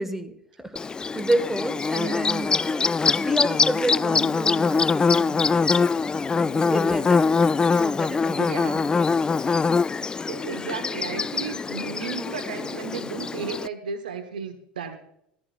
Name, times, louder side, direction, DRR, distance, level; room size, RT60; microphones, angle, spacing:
voice 1, 0.0-2.9 3.2-7.4 7.7-8.8, right 1 dB, 5° right, 9 dB, 1.4 m, -30 dB
Bird / Buzz, 0.8-13.7, left 4 dB, 15° left, 0.3 m, -23 dB
voice 2, 1.9-2.3 8.4-8.9 10.3-15.0, right 6 dB, 75° right, 7 dB, 1.1 m, -34 dB
15.0 x 14.0 x 2.4 m, 0.73 s
figure-of-eight pair, 75°, 5 cm